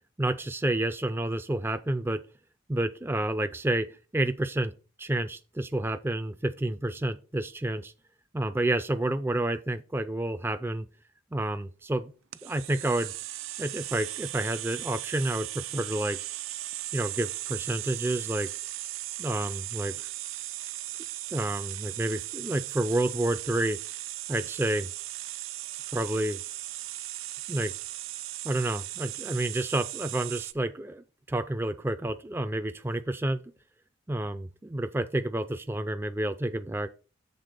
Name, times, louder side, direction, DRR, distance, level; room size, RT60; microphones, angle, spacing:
voice 1, 0.2-2.2 2.7-4.7 5.0-7.9 8.3-10.9 11.3-12.1 12.4-13.1 13.6-16.2 16.9-18.5 19.2-20.0 21.3-23.8 24.3-24.9 25.9-26.4 27.5-27.7 28.4-33.4 34.1-36.9, right 1 dB, 10° right, 0.3 m, -29 dB
sound 1, 12.3-30.5, right 16 dB, 80° right, 0.5 m, -37 dB
6.8 x 3.7 x 6.3 m
head